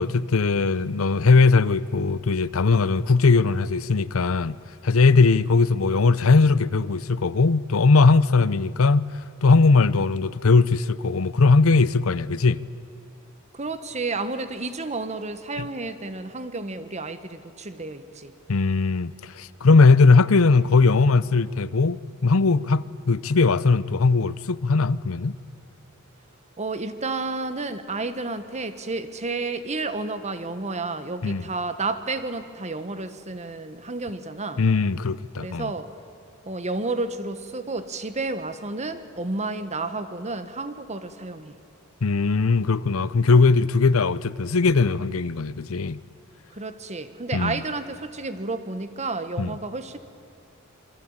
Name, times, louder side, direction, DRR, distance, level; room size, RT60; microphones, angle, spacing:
voice 1, 0.0-4.6 4.8-9.1 9.4-12.6 18.5-25.4 31.2-31.5 34.6-35.7 42.0-46.0 47.3-47.6 49.4-49.5, left 4 dB, 75° left, 0.7 m, -19 dB
voice 2, 13.5-18.3 26.6-34.6 35.4-35.9 36.4-41.6 46.5-50.0, right 3 dB, 35° right, 1.4 m, -31 dB
27.0 x 24.0 x 8.9 m
head